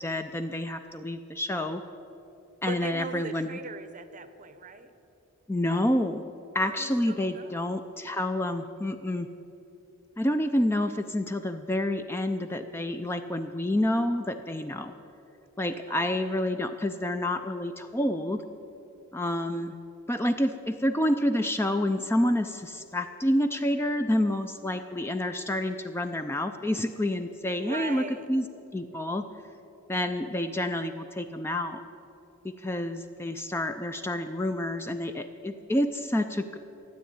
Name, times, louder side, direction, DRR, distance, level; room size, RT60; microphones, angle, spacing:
voice 1, 0.0-1.8 2.6-3.6 5.5-6.2 6.5-9.3 10.2-14.9 15.6-18.4 19.1-19.8 20.1-28.4 28.7-29.2 29.9-31.8 32.4-36.6, left 1 dB, 10° left, 8 dB, 0.4 m, -28 dB
voice 2, 2.7-4.9 6.6-7.7 15.9-16.6 27.6-28.3, right 4 dB, 35° right, 11 dB, 0.7 m, -40 dB
13.0 x 9.3 x 8.7 m, 2.9 s
head